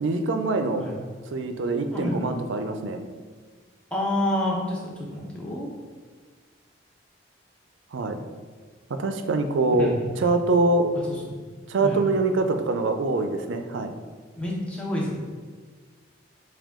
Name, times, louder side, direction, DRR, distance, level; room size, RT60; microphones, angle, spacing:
voice 1, 0.0-0.8 1.3-3.0 7.9-8.2 8.9-10.9 11.7-13.9, right 3 dB, 80° right, 7 dB, 0.4 m, -24 dB
voice 2, 1.9-2.3 3.9-5.7 9.8-10.1 11.0-11.4 11.8-12.0 14.4-15.1, left 1 dB, 5° left, -3 dB, 0.7 m, -29 dB
6.1 x 2.3 x 3.6 m, 1.5 s
head